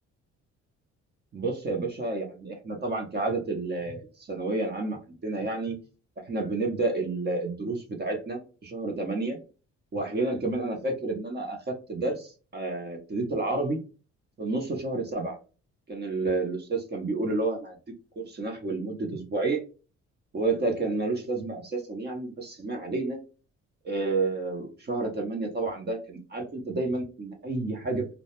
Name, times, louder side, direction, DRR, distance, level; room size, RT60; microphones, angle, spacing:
voice 1, 1.3-5.8 6.3-9.4 9.9-13.8 14.4-15.4 15.9-17.7 18.2-19.6 20.3-23.2 23.8-28.1, right 3 dB, 35° right, 2 dB, 0.6 m, -30 dB
2.2 x 2.1 x 2.9 m, 0.34 s
cardioid pair, 90°, 30 cm